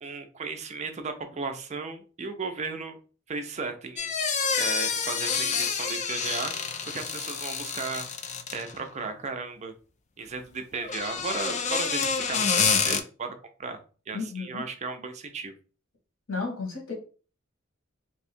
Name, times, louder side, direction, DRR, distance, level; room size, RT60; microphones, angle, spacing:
voice 1, 0.0-3.0 3.3-6.5 6.9-8.1 8.5-9.7 10.2-13.8 14.1-15.5, right 4 dB, 35° right, 7 dB, 0.5 m, -35 dB
sound 1, 4.0-8.8 10.7-13.0, left 6 dB, 35° left, 0.4 m, -28 dB
voice 2, 14.1-14.6 16.3-16.9, left 4 dB, 90° left, 0 dB, 1.4 m, -33 dB
2.7 x 2.3 x 4.2 m, 0.38 s
head